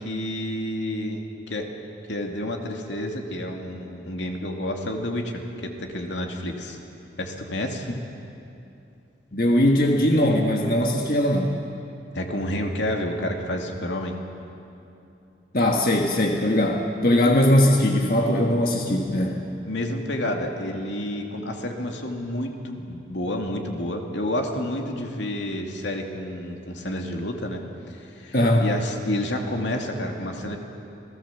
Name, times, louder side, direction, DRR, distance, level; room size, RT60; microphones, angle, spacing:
voice 1, 0.0-1.7 2.1-6.8 7.2-7.9 12.1-14.2 19.7-27.6 27.9-30.6, left 1 dB, 80° left, 2 dB, 2.5 m, -30 dB
voice 2, 9.3-11.5 15.5-19.4 28.3-28.7, left 1 dB, 50° left, 0 dB, 1.5 m, -20 dB
28.5 x 18.0 x 7.2 m, 2.7 s
head